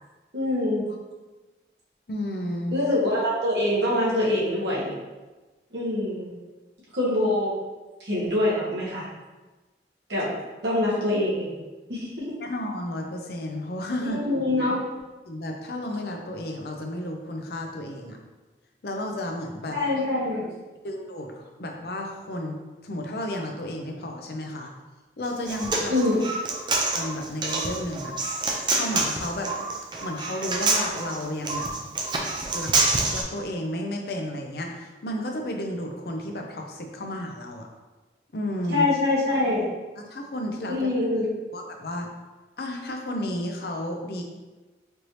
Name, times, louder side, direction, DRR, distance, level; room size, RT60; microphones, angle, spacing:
voice 1, 0.3-0.9 2.7-5.0 5.7-6.3 6.9-7.5 8.0-9.1 10.1-10.3 10.6-11.6 11.9-12.3 14.0-14.8 19.7-20.5 25.9-26.2 38.7-39.7 40.7-41.3, left 1 dB, 75° right, -6 dB, 1.3 m, -24 dB
voice 2, 2.1-2.8 12.4-14.2 15.3-18.2 18.8-19.8 20.8-22.6 22.8-24.7 25.2-25.9 26.9-28.1 28.7-29.5 30.0-31.7 32.5-32.7 33.1-37.7 38.3-38.9 40.0-40.8 41.5-42.1 42.6-44.2, left 1 dB, 60° left, 2 dB, 0.5 m, -32 dB
Human voice, 25.2-33.2, right 3 dB, 25° right, 0.4 m, -27 dB
4.5 x 2.7 x 3.1 m, 1.2 s
head